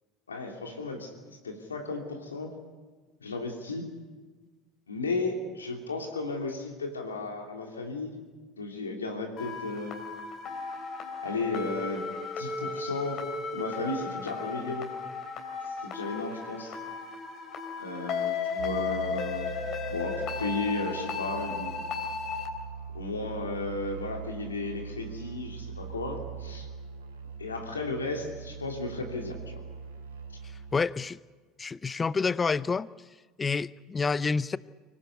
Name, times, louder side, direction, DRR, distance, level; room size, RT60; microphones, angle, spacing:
voice 1, 0.3-1.1 1.4-2.5 3.2-3.9 4.9-8.1 8.5-10.0 11.2-13.2 13.5-14.9 15.8-16.8 17.8-19.5 19.9-21.7 22.9-26.7 27.4-29.6, left 3 dB, 90° left, 2.9 m, -34 dB
sound 1, 9.4-22.5, left 5 dB, 50° left, 3.8 m, -35 dB
sound 2, 18.6-30.8, right 6 dB, 85° right, 2.5 m, -41 dB
voice 2, 30.7-31.2 31.6-32.9 33.4-34.6, left 4 dB, 25° left, 0.6 m, -28 dB
24.5 x 17.5 x 8.3 m
hypercardioid pair, 70°, 0 cm